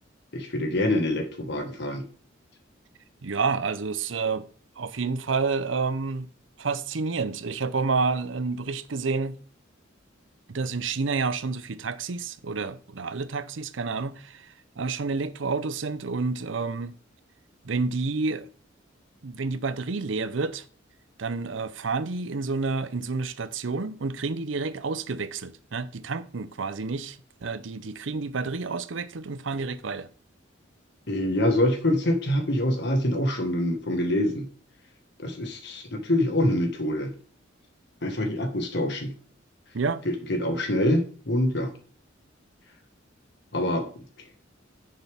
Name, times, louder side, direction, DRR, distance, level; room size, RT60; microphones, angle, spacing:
voice 1, 0.3-2.0 31.1-34.5 35.2-37.1 38.0-39.1 40.1-41.7 43.5-44.0, left 1 dB, 60° left, 1.6 m, -25 dB
voice 2, 3.2-4.5 4.8-6.3 6.6-9.4 10.5-16.9 17.6-18.5 19.2-20.6 21.2-30.1 39.7-40.0, right 4 dB, 75° right, 0.7 m, -29 dB
9.8 x 6.6 x 3.5 m
head